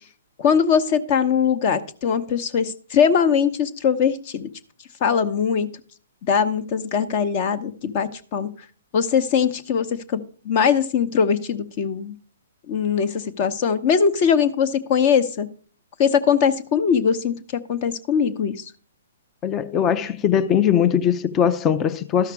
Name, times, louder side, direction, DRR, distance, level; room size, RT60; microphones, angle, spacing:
voice 1, 0.4-4.5 5.0-5.7 6.3-8.5 8.9-12.1 12.7-15.5 16.0-17.3 17.7-18.6, left 7 dB, 40° left, 0.9 m, -21 dB
voice 2, 19.4-22.3, left 9 dB, 20° left, 0.5 m, -20 dB
13.0 x 5.8 x 4.7 m
hypercardioid pair, 135°, 0 cm